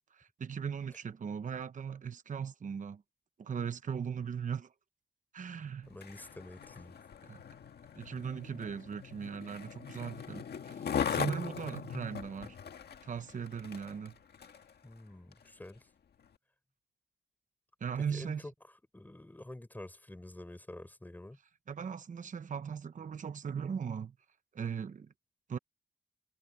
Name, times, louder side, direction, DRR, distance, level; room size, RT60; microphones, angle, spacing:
voice 1, 0.0-3.0 3.4-4.7 5.3-5.9 7.3-7.4 8.0-12.6 13.0-14.1 17.8-18.4 21.7-24.1 24.5-25.1 25.5-25.6, right 7 dB, 50° right, 0.9 m, -38 dB
Skateboard, 5.9-14.7 15.3-15.4, left 7 dB, 70° left, 1.7 m, -40 dB
voice 2, 5.9-7.0 14.8-15.9 18.0-18.5 18.9-21.4, left 1 dB, 10° left, 5.1 m, -48 dB
wide cardioid pair, 140°, 17 cm